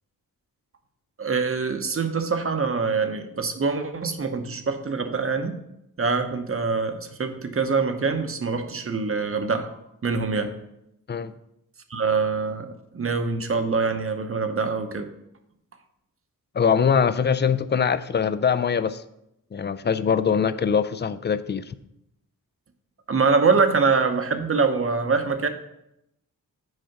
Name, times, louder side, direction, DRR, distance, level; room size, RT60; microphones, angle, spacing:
voice 1, 1.2-5.5 6.0-10.5 11.9-15.1 23.1-25.5, right 4 dB, 40° right, 7 dB, 0.8 m, -24 dB
voice 2, 16.5-19.0 19.5-21.7, left 6 dB, 30° left, 14 dB, 0.4 m, -22 dB
6.5 x 4.9 x 5.8 m, 0.83 s
wide cardioid pair, 105°, 35 cm